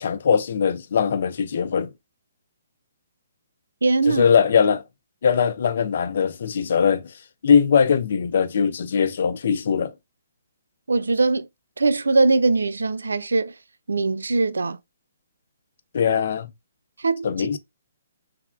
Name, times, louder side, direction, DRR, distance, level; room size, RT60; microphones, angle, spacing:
voice 1, 0.0-1.9 4.0-4.8 5.2-7.1 7.4-9.9 15.9-16.5 17.2-17.6, left 7 dB, 60° left, 0.4 m, -21 dB
voice 2, 3.8-4.3 10.9-11.5 11.8-13.5 13.9-14.8 17.0-17.6, right 3 dB, 85° right, 0.3 m, -21 dB
3.3 x 2.2 x 2.3 m
hypercardioid pair, 140°, 0 cm